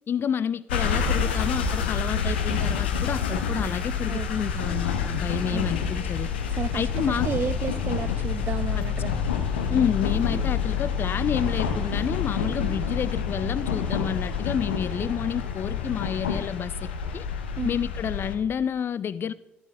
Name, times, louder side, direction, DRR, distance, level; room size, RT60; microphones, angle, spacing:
voice 1, 0.1-6.3 6.7-7.3 8.8-8.9 9.7-17.3 17.6-19.3, left 8 dB, 40° left, 0.4 m, -29 dB
sound 1, 0.7-18.3, left 6 dB, 75° left, 0.8 m, -28 dB
voice 2, 4.1-4.7 5.5-5.8 6.5-9.1 17.6-17.7, right 7 dB, 35° right, 0.3 m, -33 dB
13.0 x 7.7 x 3.3 m
figure-of-eight pair, 45°, 6 cm